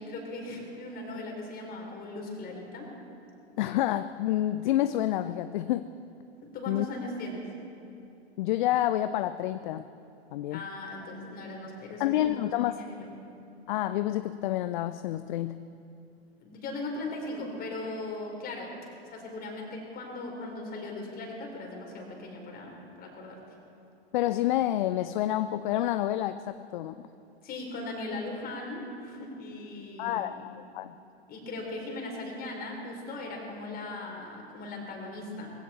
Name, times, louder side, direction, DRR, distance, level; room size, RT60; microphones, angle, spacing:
voice 1, 0.0-2.9 6.4-7.5 10.5-13.1 16.4-18.7 19.1-23.4 27.4-30.3 31.3-35.5, left 2 dB, 30° left, 0 dB, 4.2 m, -38 dB
voice 2, 3.6-5.9 6.7-6.9 8.4-9.9 10.3-10.6 12.0-12.8 13.7-15.6 24.1-27.1 30.0-30.9, left 13 dB, 50° left, 12 dB, 0.5 m, -28 dB
20.5 x 16.0 x 4.4 m, 2.7 s
figure-of-eight pair, 95°, 32 cm